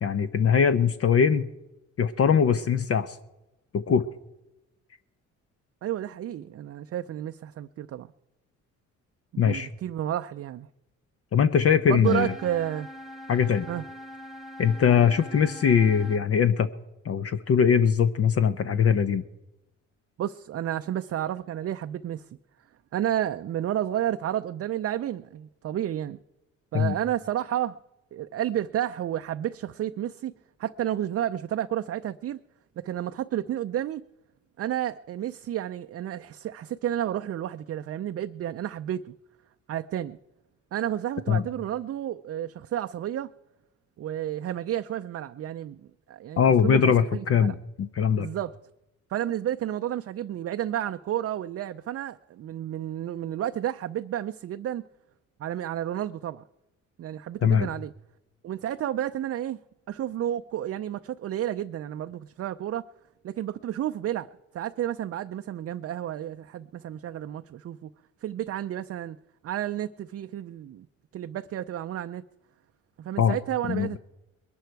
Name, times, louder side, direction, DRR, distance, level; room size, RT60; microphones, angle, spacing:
voice 1, 0.0-1.5 2.0-3.2 3.7-4.0 9.4-9.7 11.3-12.3 13.3-13.7 14.6-16.7 17.0-19.2 26.7-26.9 41.3-41.4 46.4-48.3 57.4-57.7 73.2-73.4 73.7-74.0, left 7 dB, 50° left, 0.8 m, -21 dB
voice 2, 5.8-8.1 9.3-10.7 11.9-12.9 13.7-13.8 20.2-22.3 22.9-26.2 26.7-27.8 28.1-30.3 30.6-32.4 32.8-34.0 34.6-39.1 39.7-40.2 40.7-43.3 44.0-45.8 46.1-47.5 48.2-48.5 49.1-54.8 55.4-56.4 57.0-57.9 58.4-59.6 59.9-62.8 63.2-67.9 68.2-69.2 69.4-70.9 71.1-72.2 73.0-74.0, right 11 dB, 50° right, 0.5 m, -31 dB
sound 1, 12.0-16.2, equal, ahead, 1.2 m, -43 dB
21.5 x 11.5 x 4.6 m
cardioid pair, 90°, 30 cm